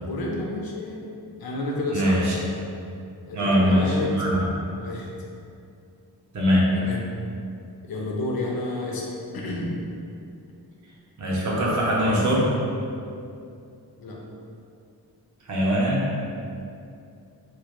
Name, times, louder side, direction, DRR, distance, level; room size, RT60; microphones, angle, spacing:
voice 1, 0.0-1.1 1.4-2.4 3.3-4.2 4.8-5.1 6.7-7.1 7.8-9.8 14.0-14.2, left 2 dB, 65° left, -2 dB, 0.5 m, -30 dB
voice 2, 1.9-2.3 3.3-4.3 6.3-6.7 11.2-12.5 15.5-16.1, equal, 50° right, -5 dB, 0.5 m, -22 dB
2.2 x 2.1 x 2.9 m, 2.5 s
wide cardioid pair, 115°, 39 cm